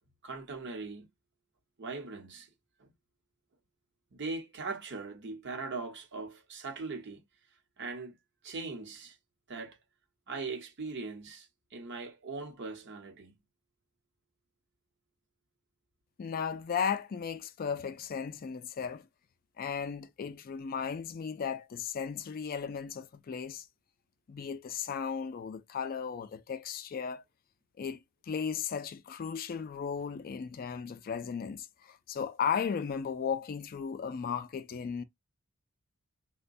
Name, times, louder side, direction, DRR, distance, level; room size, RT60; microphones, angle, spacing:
voice 1, 0.2-1.1 1.8-2.5 2.8-2.9 4.1-7.2 7.8-8.2 8.4-9.2 9.5-9.8 10.3-13.3, right 3 dB, 55° right, 0.9 m, -40 dB
voice 2, 16.2-19.1 19.6-23.7 24.3-27.2 27.8-35.0, left 6 dB, 40° left, 0.3 m, -35 dB
3.9 x 2.2 x 2.5 m
head